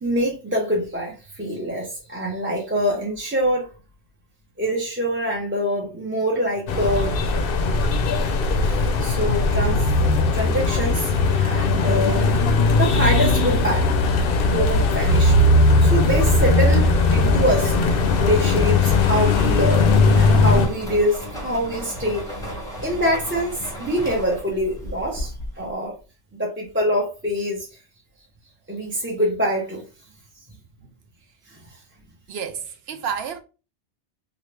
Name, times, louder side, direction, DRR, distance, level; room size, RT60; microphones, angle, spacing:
voice 1, 0.0-3.7 4.6-7.2 9.0-9.8 10.3-12.3 12.7-13.9 14.4-15.4 15.8-17.7 18.2-22.2 22.8-26.0 26.4-27.7 28.7-29.8 31.5-31.6, equal, 15° right, 0.6 m, -24 dB
sound 1, 6.7-20.7, left 3 dB, 65° left, 0.7 m, -18 dB
sound 2, 16.4-25.7, equal, 5° left, 1.0 m, -33 dB
voice 2, 32.3-33.4, right 7 dB, 65° right, 0.8 m, -30 dB
2.9 x 2.4 x 3.2 m
omnidirectional pair, 1.2 m